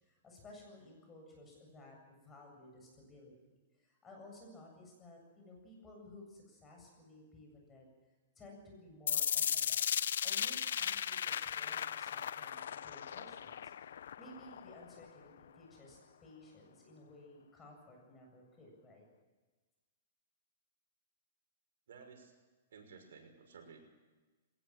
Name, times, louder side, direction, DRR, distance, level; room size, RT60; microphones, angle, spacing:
voice 1, 0.0-3.3 3.8-7.9 8.4-9.8 10.2-19.0, left 1 dB, 15° left, 1 dB, 7.7 m, -56 dB
sound 1, 9.1-15.1, left 9 dB, 80° left, 0.6 m, -36 dB
voice 2, 21.9-22.3 22.7-23.8, right 5 dB, 80° right, 3 dB, 6.0 m, -55 dB
21.5 x 19.0 x 7.5 m, 1.3 s
hypercardioid pair, 155°, 0 cm